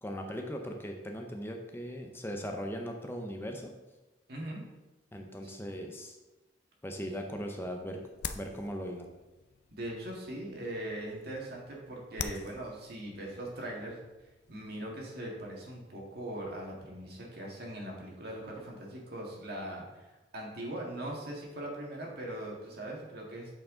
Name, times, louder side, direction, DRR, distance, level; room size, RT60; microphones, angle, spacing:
voice 1, 0.0-3.7 5.1-6.2 6.8-8.0 8.4-9.1, equal, 15° left, 3 dB, 0.6 m, -39 dB
voice 2, 4.3-4.6 5.4-5.5 9.7-14.0 14.5-20.0 20.3-23.5, right 1 dB, 60° right, -2 dB, 1.8 m, -40 dB
sound 1, 7.2-14.9, left 6 dB, 65° left, 0.5 m, -46 dB
7.9 x 4.7 x 3.8 m, 1.1 s
head